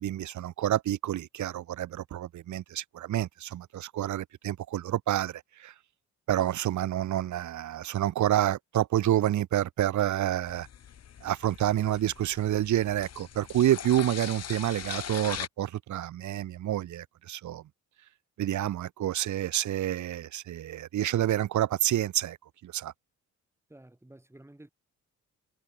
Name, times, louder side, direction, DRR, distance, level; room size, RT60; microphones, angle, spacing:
voice 1, 0.0-5.7 6.3-10.7 11.2-17.6 18.4-22.4 22.6-22.9, right 12 dB, 70° right, 2.0 m, -28 dB
sound 1, 10.5-15.5, left 9 dB, 55° left, 2.5 m, -41 dB
voice 2, 23.7-24.7, right 1 dB, 10° right, 6.7 m, -52 dB
cardioid pair, 90°, 30 cm